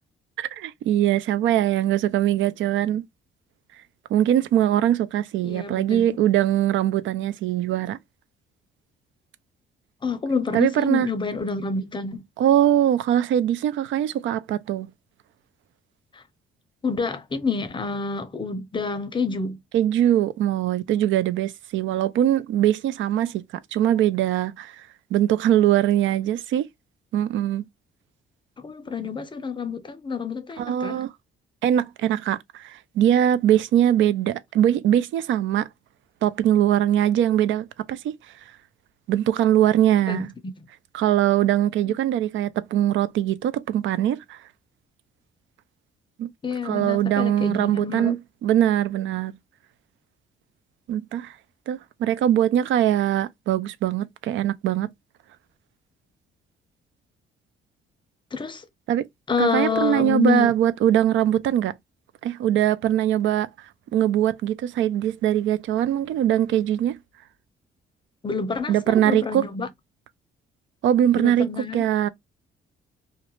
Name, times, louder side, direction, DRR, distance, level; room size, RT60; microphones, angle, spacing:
voice 1, 0.4-3.0 4.1-8.0 10.5-11.1 12.4-14.9 19.7-23.5 23.7-24.8 25.1-26.7 27.1-27.6 30.6-31.1 31.6-35.7 36.2-38.0 39.1-40.3 40.9-44.4 46.2-46.3 46.6-49.3 50.9-51.3 51.7-54.9 58.9-59.0 59.4-61.7 62.2-63.5 63.9-67.0 68.7-69.5 70.8-72.1, right 11 dB, 75° right, 0.4 m, -22 dB
voice 2, 5.4-6.2 10.0-12.2 16.1-16.2 16.8-19.6 28.6-31.0 40.1-40.3 41.9-42.0 46.4-48.2 58.3-58.6 59.3-60.6 68.2-69.7 71.1-71.8, left 5 dB, 25° left, 0.6 m, -28 dB
2.4 x 2.1 x 3.0 m
cardioid pair, 90°, 20 cm